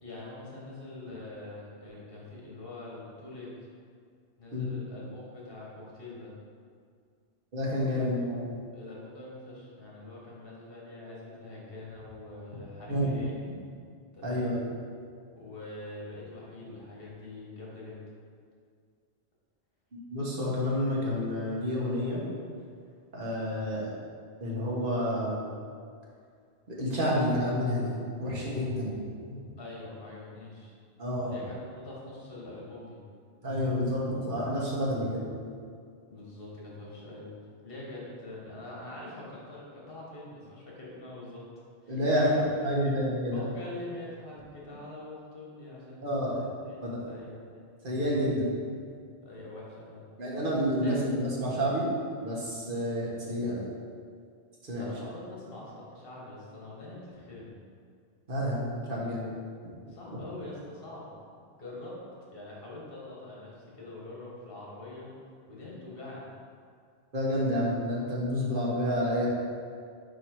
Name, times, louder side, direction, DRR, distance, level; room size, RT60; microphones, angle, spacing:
voice 1, 0.0-3.5 4.4-6.3 7.9-8.2 8.7-13.3 14.1-14.6 15.3-18.0 29.6-30.7 31.2-33.0 36.1-37.3 37.6-41.4 41.8-42.9 43.3-47.6 48.1-48.3 49.2-50.0 50.8-51.0 52.6-52.8 54.8-57.6 59.9-61.1 61.6-62.0 62.3-65.1 65.4-66.3, left 2 dB, 60° left, -5 dB, 1.5 m, -44 dB
voice 2, 7.5-8.6 12.9-13.2 14.2-14.6 20.1-22.2 23.1-23.9 24.4-25.4 26.7-27.9 28.2-29.4 31.0-31.3 33.4-35.3 41.9-42.3 42.6-43.4 46.0-46.5 46.8-47.0 47.8-48.5 50.2-51.9 52.2-53.6 54.6-54.9 58.3-59.3 67.1-69.3, equal, 55° right, -5 dB, 1.4 m, -29 dB
4.7 x 4.6 x 4.5 m, 2.2 s
omnidirectional pair, 1.1 m